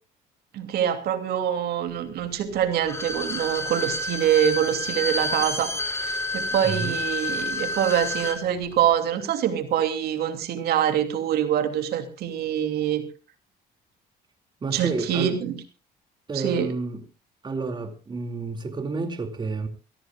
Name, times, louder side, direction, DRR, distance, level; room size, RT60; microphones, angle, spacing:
voice 1, 0.5-13.0 14.7-15.5 16.3-16.7, right 10 dB, 70° right, 2.7 m, -25 dB
Bowed string instrument, 2.7-8.4 8.7-8.8, left 2 dB, 15° left, 3.9 m, -29 dB
voice 2, 6.5-7.0 14.6-15.4 16.3-17.0 17.4-19.7, right 3 dB, 25° right, 2.4 m, -30 dB
24.5 x 17.0 x 2.4 m
cardioid pair, 110°, 17 cm